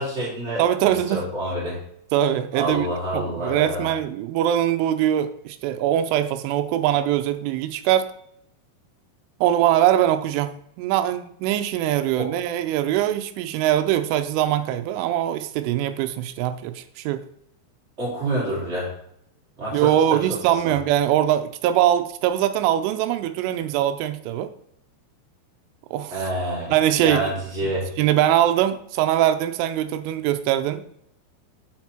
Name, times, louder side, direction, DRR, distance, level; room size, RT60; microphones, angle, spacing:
voice 1, 0.0-1.8 2.5-3.9 12.2-12.3 18.0-18.9 19.6-20.7 26.1-27.9, right 1 dB, 20° right, -7 dB, 2.3 m, -28 dB
voice 2, 0.6-1.2 2.1-2.9 3.1-8.1 9.4-17.2 19.7-24.5 25.9-26.2 26.7-27.3 28.0-30.8, right 11 dB, 85° right, 9 dB, 2.9 m, -22 dB
5.9 x 5.9 x 4.4 m, 0.72 s
omnidirectional pair, 5.9 m